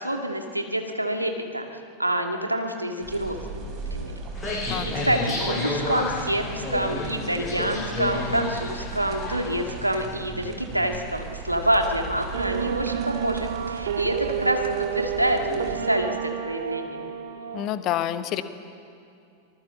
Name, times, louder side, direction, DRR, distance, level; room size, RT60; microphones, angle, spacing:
voice 1, 0.0-1.7 2.0-4.1 4.7-14.6 14.9-17.1, right 1 dB, 85° right, 4 dB, 2.0 m, -27 dB
sound 1, 3.0-15.8, right 3 dB, 35° right, 4.8 m, -37 dB
sound 2, 4.3-9.7, left 3 dB, 15° left, 6.8 m, -31 dB
voice 2, 4.7-5.1 17.5-18.4, left 12 dB, 35° left, 11 dB, 1.2 m, -28 dB
sound 3, 12.3-17.7, right 9 dB, 60° right, 2.3 m, -30 dB
25.0 x 20.0 x 7.5 m, 2.5 s
figure-of-eight pair, 90°, 0 cm